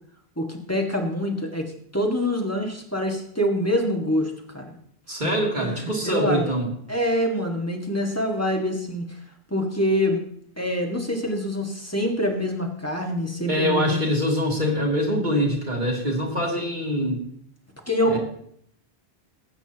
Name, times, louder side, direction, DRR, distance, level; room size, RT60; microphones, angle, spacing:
voice 1, 0.4-4.8 5.2-6.5 6.9-9.0 9.5-10.2 10.6-14.0 17.9-18.2, equal, 15° left, 1 dB, 1.8 m, -25 dB
voice 2, 5.1-6.7 13.5-17.2 18.1-18.2, equal, 45° right, -2 dB, 2.9 m, -24 dB
19.5 x 8.8 x 3.0 m, 0.66 s
omnidirectional pair, 1.1 m